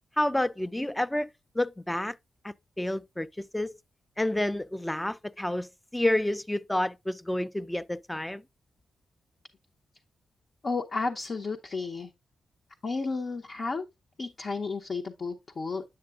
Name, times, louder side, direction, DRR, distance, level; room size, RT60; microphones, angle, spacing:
voice 1, 0.2-1.3 1.6-2.2 2.4-3.8 4.2-8.4, left 1 dB, 10° left, 0.4 m, -29 dB
voice 2, 10.6-12.1 12.8-13.9 14.2-15.8, left 4 dB, 50° left, 0.8 m, -32 dB
8.7 x 6.6 x 2.4 m
cardioid pair, 60°, 0 cm